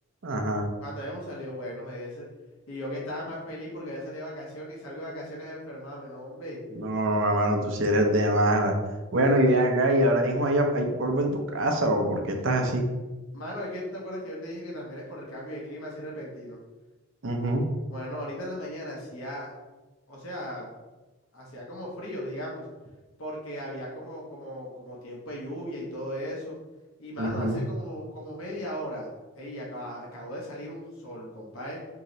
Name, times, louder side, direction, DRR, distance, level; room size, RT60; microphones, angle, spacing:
voice 1, 0.2-0.7 6.7-8.7 9.1-12.8 17.2-17.6 27.2-27.6, right 1 dB, 60° right, 3 dB, 0.5 m, -24 dB
voice 2, 0.8-2.3 2.7-6.6 13.3-16.6 17.9-19.5 20.1-20.7 21.3-22.6 23.2-26.6 27.0-31.8, equal, 75° left, -3 dB, 0.9 m, -37 dB
3.0 x 2.8 x 3.8 m, 1.2 s
head